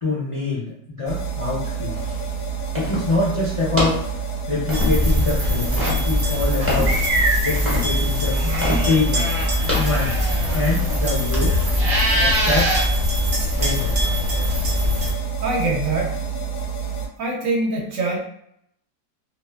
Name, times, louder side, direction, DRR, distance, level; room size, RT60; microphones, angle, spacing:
voice 1, 0.0-2.0 2.7-4.0 4.5-7.0 7.4-9.3 9.7-10.2 10.5-11.6 12.1-12.7 13.6-14.0, left 3 dB, 50° left, -7 dB, 0.4 m, -25 dB
sound 1, 1.1-17.1, right 6 dB, 75° left, 1.1 m, -28 dB
sound 2, 1.9-10.9, left 1 dB, 15° right, 0.4 m, -30 dB
sound 3, 4.7-15.1, left 1 dB, 50° right, 0.7 m, -21 dB
voice 2, 15.4-16.2 17.2-18.2, right 2 dB, 70° right, -1 dB, 1.0 m, -23 dB
2.6 x 2.4 x 2.2 m, 0.71 s
omnidirectional pair, 1.6 m